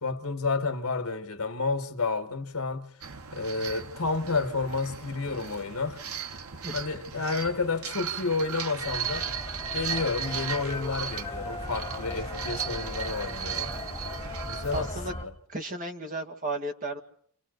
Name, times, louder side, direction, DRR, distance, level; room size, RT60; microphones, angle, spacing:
voice 1, 0.0-2.9 3.3-6.0 6.7-9.3 9.7-13.8 14.5-15.2, left 4 dB, 85° left, 1.7 m, -30 dB
sound 1, 3.0-15.1, right 7 dB, 85° right, 1.1 m, -37 dB
sound 2, 8.8-15.3, left 2 dB, 15° left, 2.8 m, -38 dB
voice 2, 14.7-15.1 15.5-17.0, right 2 dB, 35° right, 2.1 m, -34 dB
29.0 x 28.0 x 4.0 m
head